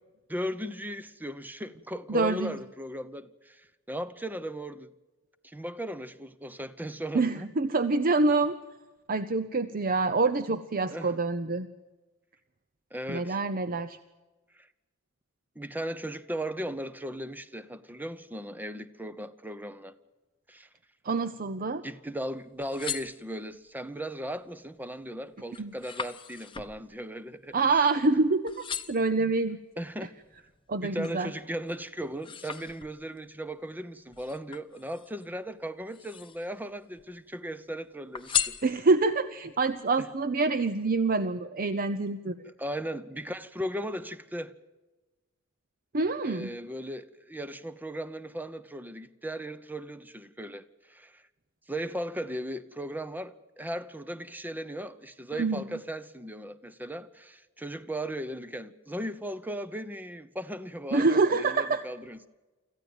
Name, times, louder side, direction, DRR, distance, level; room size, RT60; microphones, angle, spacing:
voice 1, 0.3-4.9 5.4-7.5 10.9-11.1 12.9-13.4 14.5-14.7 15.6-19.9 20.5-20.7 21.8-27.8 29.8-30.2 30.8-38.6 40.0-40.1 42.4-44.5 46.2-51.2 51.7-62.3, equal, 10° right, 0.8 m, -37 dB
voice 2, 2.1-2.5 7.1-8.6 9.1-11.7 13.1-14.0 21.0-21.8 25.6-25.7 27.5-28.5 28.9-29.6 30.7-31.3 38.6-42.3 45.9-46.5 55.4-55.6 60.9-61.8, right 3 dB, 45° right, 0.7 m, -26 dB
sound 1, 22.4-23.7 24.3-24.7 25.1-28.2 28.5-29.2 29.8-31.3 31.7-33.2 34.1-35.3 35.8-36.6 36.9-37.7 38.1-39.2 39.7-39.8, left 8 dB, 25° left, 0.9 m, -37 dB
25.5 x 14.5 x 8.9 m
head